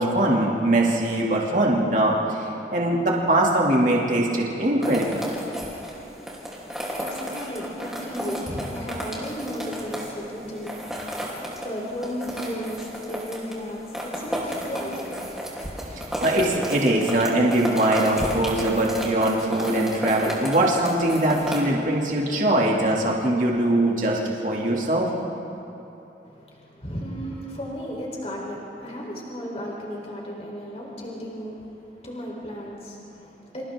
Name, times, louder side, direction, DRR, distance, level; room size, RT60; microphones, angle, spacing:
voice 1, 0.0-2.4 2.7-5.2 16.2-25.1, right 1 dB, 45° right, -2 dB, 2.6 m, -22 dB
sound 1, 4.8-21.6, equal, 5° right, 3.2 m, -33 dB
voice 2, 6.4-16.2 26.2-33.7, equal, 35° left, -2 dB, 4.0 m, -35 dB
30.0 x 27.0 x 3.8 m, 3.0 s
head